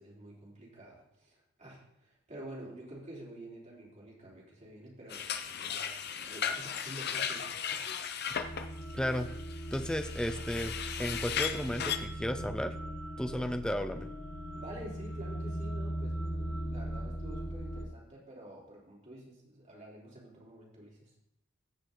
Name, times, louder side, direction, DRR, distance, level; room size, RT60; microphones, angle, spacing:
voice 1, 0.0-7.9 14.5-21.1, right 1 dB, 35° right, -4 dB, 3.4 m, -49 dB
sound 1, 5.1-12.0, left 8 dB, 55° left, 0.7 m, -36 dB
sound 2, 8.3-17.9, right 1 dB, 80° left, 1.5 m, -39 dB
voice 2, 8.9-9.3 9.7-12.8 13.2-14.1, equal, 5° left, 8 dB, 0.5 m, -34 dB
15.5 x 5.3 x 3.9 m, 0.76 s
head